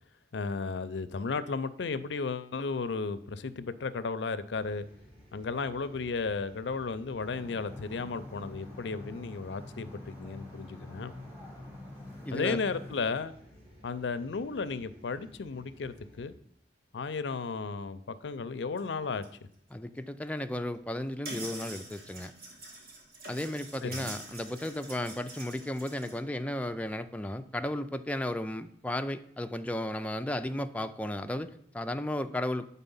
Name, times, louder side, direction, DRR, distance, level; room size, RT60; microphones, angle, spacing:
voice 1, 0.3-4.8 5.3-11.1 12.3-13.3 13.8-16.3 16.9-19.2 23.8-24.1, left 4 dB, 80° left, 13 dB, 0.5 m, -34 dB
sound 1, 4.6-16.3, equal, 35° right, 1.7 m, -56 dB
sound 2, 7.2-13.0, left 1 dB, 15° right, 1.7 m, -46 dB
voice 2, 12.3-12.6 19.7-22.3 23.3-32.7, left 1 dB, 10° left, 8 dB, 0.4 m, -34 dB
sound 3, 18.8-18.9 19.2-19.3 20.4-20.5 21.2-26.2, right 2 dB, 60° right, 1.8 m, -45 dB
9.0 x 4.1 x 5.4 m, 0.68 s
head